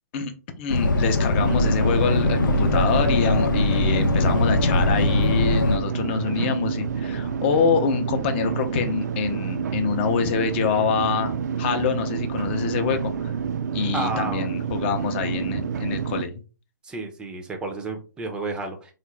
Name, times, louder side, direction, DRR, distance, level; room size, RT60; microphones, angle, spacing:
voice 1, 0.6-13.3 13.7-16.3, left 6 dB, 35° left, 7 dB, 0.6 m, -26 dB
sound 1, 0.7-5.8, left 2 dB, 85° left, 0.5 m, -21 dB
sound 2, 1.4-16.2, right 7 dB, 60° right, 0.4 m, -28 dB
voice 2, 13.9-14.5 16.8-18.9, right 2 dB, 10° right, 4 dB, 0.5 m, -31 dB
3.7 x 2.4 x 3.1 m, 0.34 s
hypercardioid pair, 140°, 10 cm